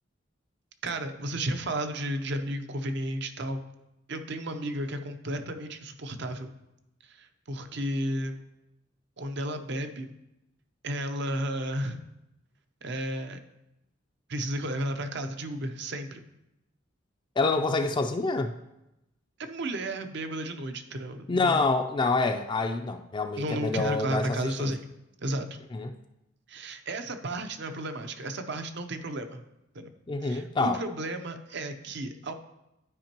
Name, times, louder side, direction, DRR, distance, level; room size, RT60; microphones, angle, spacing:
voice 1, 0.8-3.6 4.1-6.5 7.0-8.4 9.2-10.1 10.8-12.0 12.8-13.4 14.3-16.2 19.4-21.7 23.4-24.8 25.2-25.5 26.5-29.4 29.7-29.9 30.2-32.3, right 1 dB, 60° right, 8 dB, 0.7 m, -33 dB
voice 2, 17.4-18.5 21.3-24.3 24.6-24.7 25.7-25.9 30.1-30.8, left 3 dB, 25° left, 6 dB, 0.4 m, -26 dB
12.0 x 5.2 x 2.9 m, 0.91 s
head